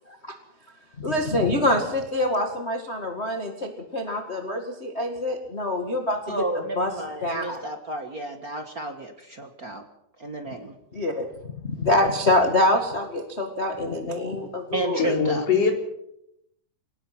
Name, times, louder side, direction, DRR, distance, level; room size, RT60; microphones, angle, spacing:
voice 1, 1.0-6.4 6.8-6.9 7.2-7.6 10.9-11.2 11.7-15.1, left 1 dB, 25° left, 3 dB, 1.5 m, -25 dB
voice 2, 6.3-9.8 10.2-10.7 14.7-15.4, right 2 dB, 55° right, 5 dB, 1.0 m, -32 dB
voice 3, 15.0-15.7, left 6 dB, 45° left, 2 dB, 4.9 m, -22 dB
23.0 x 19.5 x 6.1 m, 0.79 s
omnidirectional pair, 4.2 m